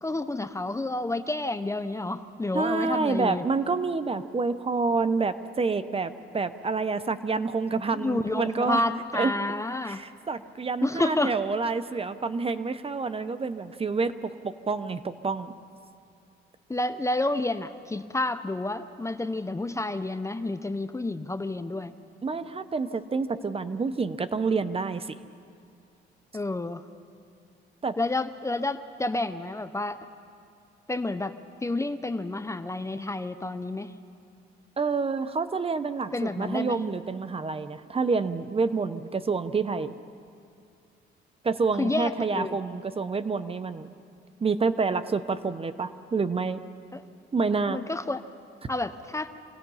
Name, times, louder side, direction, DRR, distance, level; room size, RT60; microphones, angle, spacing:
voice 1, 0.0-3.5 7.9-10.0 10.8-11.3 16.7-21.9 26.3-26.8 28.0-30.0 30.9-31.4 31.6-33.9 36.1-36.8 41.8-42.6 46.9-47.0 47.7-48.2 48.7-49.3, left 2 dB, 15° left, 10 dB, 0.7 m, -30 dB
voice 2, 2.5-8.8 9.1-9.3 9.8-15.5 22.2-25.1 27.8-28.0 34.8-39.9 41.4-43.9 44.4-46.6 47.3-47.8, right 4 dB, 30° right, 12 dB, 0.8 m, -28 dB
27.5 x 17.5 x 5.6 m, 2.4 s
cardioid pair, 90°, 20 cm